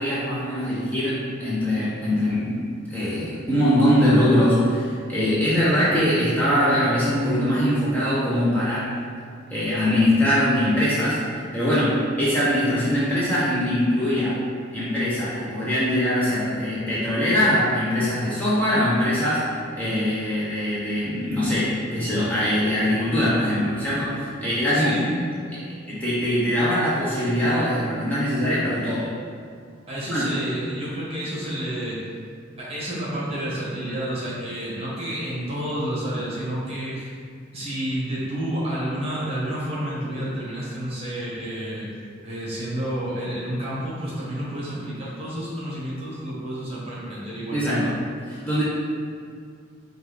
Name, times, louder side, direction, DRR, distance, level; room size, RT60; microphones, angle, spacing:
voice 1, 0.0-2.6 2.9-8.9 9.5-14.4 14.7-19.5 19.8-25.0 25.5-29.1 30.1-30.3 47.5-48.0 48.3-48.6, equal, 10° left, -10 dB, 0.7 m, -22 dB
voice 2, 24.7-25.1 29.9-32.0 32.6-37.2 37.5-41.9 42.2-47.8, right 1 dB, 30° right, -7 dB, 1.2 m, -30 dB
5.0 x 2.3 x 3.3 m, 2.2 s
head